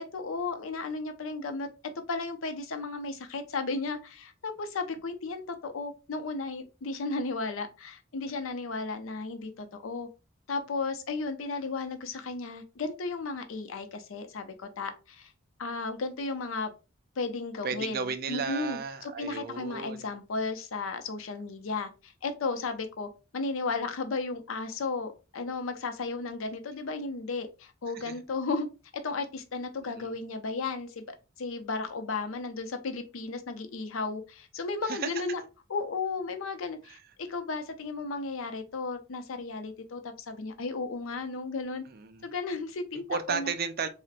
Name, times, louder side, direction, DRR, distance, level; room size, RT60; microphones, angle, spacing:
voice 1, 0.0-10.1 10.5-15.3 15.6-16.7 17.2-18.8 19.2-28.7 28.9-35.4 35.7-41.8 42.2-43.5, left 3 dB, 85° left, 0.5 m, -34 dB
voice 2, 17.6-20.1 27.9-28.1 29.8-30.1 34.9-35.1 36.9-37.0 41.9-42.3 43.1-43.9, right 5 dB, 50° right, 0.4 m, -34 dB
4.0 x 2.1 x 2.5 m
head